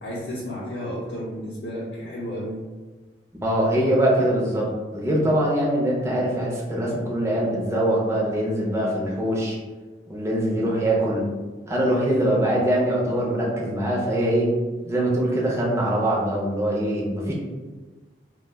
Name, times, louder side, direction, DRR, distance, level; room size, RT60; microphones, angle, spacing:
voice 1, 0.0-2.6 12.2-12.5, equal, 65° left, -7 dB, 0.6 m, -32 dB
voice 2, 3.4-4.7 4.9-9.6 10.1-11.2 11.7-14.5 14.8-17.3, right 1 dB, 15° right, -4 dB, 0.6 m, -23 dB
2.2 x 2.2 x 3.3 m, 1.3 s
head